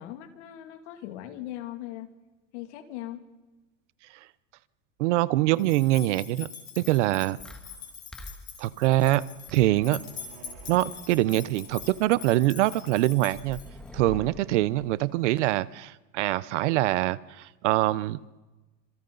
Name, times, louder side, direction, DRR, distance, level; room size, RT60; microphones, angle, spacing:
voice 1, 0.0-2.1 2.5-3.2, left 13 dB, 65° left, 6 dB, 2.6 m, -39 dB
voice 2, 5.0-6.5 6.8-7.4 8.6-9.2 9.5-10.0 10.7-13.6 13.9-18.2, right 16 dB, 70° right, 18 dB, 0.8 m, -24 dB
sound 1, 5.6-13.9, left 7 dB, 30° left, 4.4 m, -44 dB
sound 2, 7.4-15.6, left 1 dB, ahead, 1.4 m, -47 dB
sound 3, 9.0-13.6, right 6 dB, 50° right, 3.1 m, -54 dB
27.5 x 26.5 x 4.0 m, 1.1 s
supercardioid pair, 165°, 38 cm